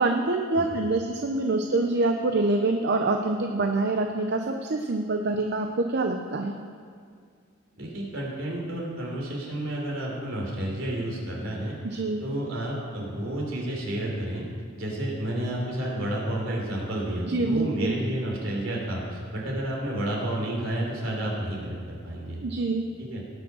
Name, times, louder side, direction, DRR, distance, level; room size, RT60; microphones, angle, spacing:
voice 1, 0.0-6.5 11.8-12.2 17.2-17.9 22.4-22.8, right 2 dB, 55° right, 3 dB, 0.7 m, -25 dB
voice 2, 7.8-11.8 12.2-14.4 14.7-22.4 23.0-23.2, right 1 dB, 75° right, -2 dB, 3.4 m, -31 dB
18.5 x 6.2 x 6.2 m, 2.1 s
head